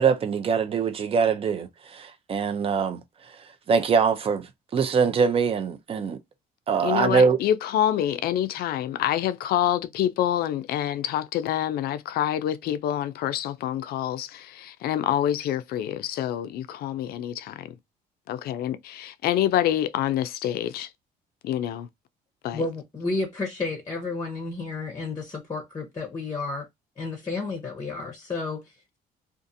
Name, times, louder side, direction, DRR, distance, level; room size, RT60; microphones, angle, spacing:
voice 1, 0.0-3.0 3.7-6.2 6.7-7.4, right 6 dB, 35° right, 0.5 m, -23 dB
voice 2, 6.8-17.7 18.3-20.9 21.4-21.9 22.4-22.6, left 11 dB, 65° left, 0.4 m, -27 dB
voice 3, 22.5-26.7 27.0-29.0, left 3 dB, 20° left, 0.7 m, -31 dB
2.6 x 2.5 x 2.6 m
cardioid pair, 110°, 17 cm